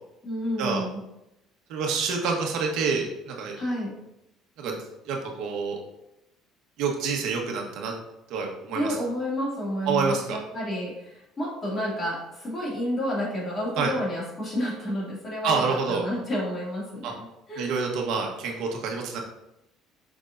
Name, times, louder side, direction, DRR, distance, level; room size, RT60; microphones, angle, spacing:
voice 1, 0.2-1.0 3.5-4.0 8.7-17.8, equal, 25° left, -5 dB, 2.4 m, -30 dB
voice 2, 1.7-3.5 4.6-4.8 5.1-5.8 6.8-7.9 8.3-8.9 9.9-10.4 13.8-13.9 15.4-16.0 17.0-17.1 17.6-19.2, right 5 dB, 65° right, 1 dB, 1.2 m, -27 dB
6.3 x 6.1 x 2.6 m, 0.86 s
cardioid pair, 160°, 0 cm